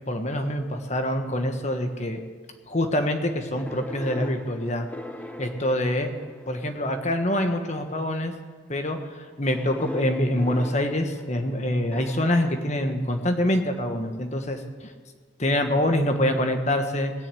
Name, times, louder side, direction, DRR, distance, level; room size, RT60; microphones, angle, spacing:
voice 1, 0.1-2.2 2.7-4.9 5.4-6.1 6.5-8.3 8.7-14.9 15.4-17.1, left 1 dB, 40° left, 6 dB, 1.3 m, -25 dB
sound 1, 3.5-6.9 7.7-8.1 9.5-13.6 15.7-15.8, left 1 dB, 10° left, 0.7 m, -41 dB
19.5 x 6.8 x 8.4 m, 1.5 s
head